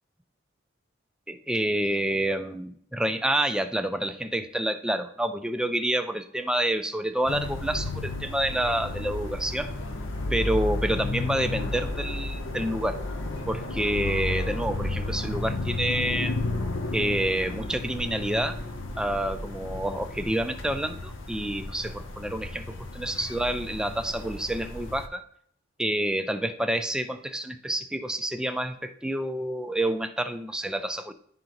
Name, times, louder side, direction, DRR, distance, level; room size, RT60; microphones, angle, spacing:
voice 1, 1.3-9.7 10.3-13.0 13.5-16.4 16.9-18.6 19.0-25.2 25.8-31.1, right 1 dB, 5° right, 8 dB, 0.3 m, -28 dB
sound 1, 7.3-25.1, left 2 dB, 75° left, 0.6 m, -33 dB
10.5 x 3.8 x 2.9 m, 0.63 s
head